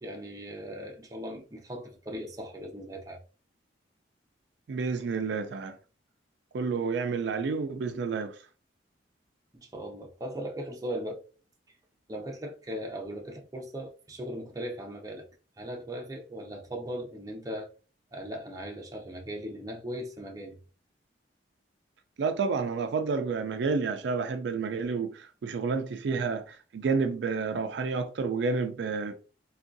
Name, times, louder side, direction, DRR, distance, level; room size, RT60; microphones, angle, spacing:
voice 1, 0.0-3.2 9.5-11.2 12.1-15.3 15.6-17.7 18.1-20.6, equal, 20° right, 0.6 m, -38 dB
voice 2, 4.7-5.8 6.5-8.3 22.2-29.1, right 4 dB, 70° right, 0.4 m, -30 dB
3.5 x 2.3 x 2.6 m
head